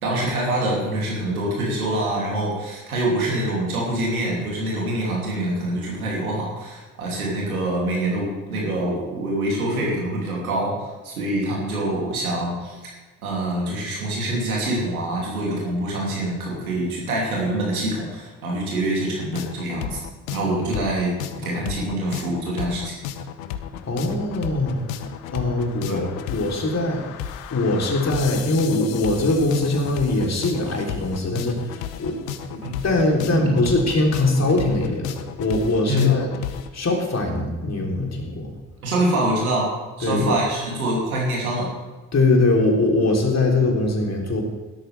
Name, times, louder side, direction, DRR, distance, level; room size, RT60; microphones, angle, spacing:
voice 1, 0.0-12.8 13.2-20.0 20.3-21.1 21.4-22.9 25.9-26.0 32.6-32.8 33.4-33.7 35.9-36.1 38.8-39.7 40.0-41.7, right 1 dB, 85° right, -3 dB, 3.0 m, -25 dB
sound 1, 19.3-36.7, left 9 dB, 70° left, 0.9 m, -34 dB
voice 2, 23.8-24.8 25.3-27.1 27.5-32.2 32.5-36.3 36.7-38.5 40.0-40.4 42.1-44.4, left 2 dB, 35° left, 0 dB, 3.5 m, -22 dB
17.0 x 13.0 x 3.5 m, 1.3 s
figure-of-eight pair, 40°, 42 cm